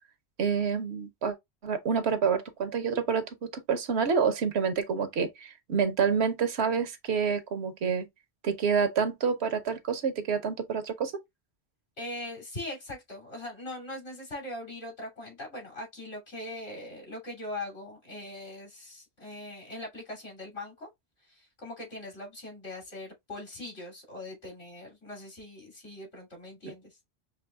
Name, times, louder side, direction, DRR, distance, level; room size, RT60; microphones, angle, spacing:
voice 1, 0.4-1.4 1.6-8.0 8.4-11.1, right 6 dB, 80° right, 1.1 m, -28 dB
voice 2, 12.0-20.9 21.2-27.0, left 1 dB, 70° left, 3.1 m, -41 dB
6.2 x 3.1 x 2.2 m
omnidirectional pair, 1.1 m